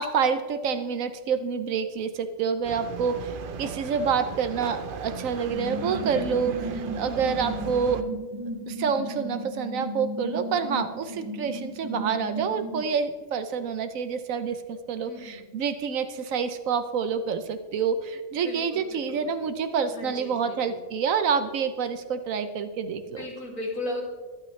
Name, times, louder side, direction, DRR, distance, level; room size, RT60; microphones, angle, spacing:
voice 1, 0.0-8.0 8.7-23.3, right 6 dB, 80° right, 9 dB, 1.2 m, -28 dB
sound 1, 2.6-8.0, right 6 dB, 50° right, 0.7 m, -37 dB
sound 2, 5.5-12.8, right 1 dB, 15° right, 2.3 m, -35 dB
voice 2, 15.1-15.5 18.3-19.5 19.9-20.8 23.2-24.0, left 1 dB, 85° left, -1 dB, 3.0 m, -36 dB
22.0 x 9.0 x 3.2 m, 1.4 s
omnidirectional pair, 1.4 m